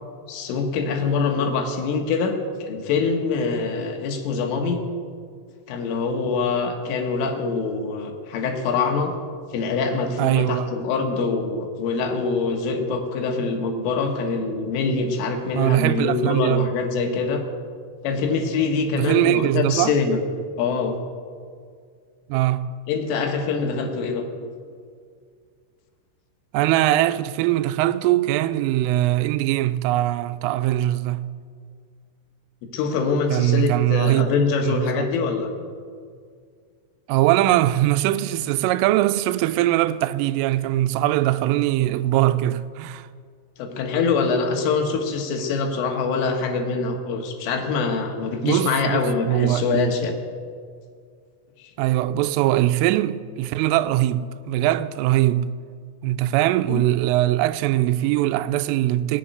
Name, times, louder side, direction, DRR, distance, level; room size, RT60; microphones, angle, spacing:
voice 1, 0.3-4.8 5.7-9.1 9.5-17.4 18.0-20.2 20.6-21.0 22.9-24.2 32.7-35.5 43.6-50.2 56.7-56.8, left 4 dB, 80° left, 3.9 m, -24 dB
voice 2, 10.2-10.7 15.5-16.7 18.9-19.9 22.3-22.7 26.5-31.3 33.3-34.3 34.6-35.1 37.1-43.1 48.4-50.0 51.8-55.5 56.0-59.2, right 15 dB, 90° right, 3.2 m, -21 dB
19.5 x 7.7 x 9.2 m
omnidirectional pair, 5.7 m